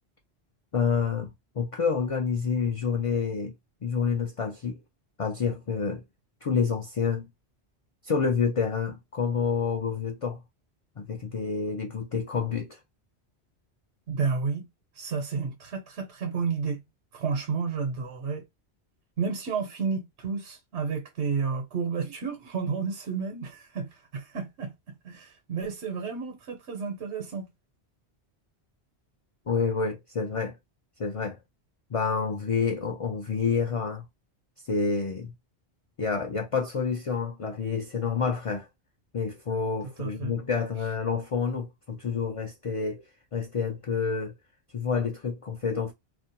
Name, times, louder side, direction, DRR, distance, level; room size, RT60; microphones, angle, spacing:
voice 1, 0.7-3.5 3.8-4.8 5.2-6.0 6.4-7.3 8.0-10.4 11.0-12.8 29.5-30.6 31.0-31.4 31.9-34.0 34.7-35.3 36.0-38.7 39.1-43.0 43.3-44.3 44.7-45.9, left 5 dB, 60° left, 0.3 m, -28 dB
voice 2, 14.1-14.7 14.9-16.8 17.1-18.4 19.2-24.7 25.0-27.5 39.8-40.3, right 5 dB, 90° right, 1.1 m, -31 dB
2.4 x 2.2 x 2.7 m
omnidirectional pair, 1.1 m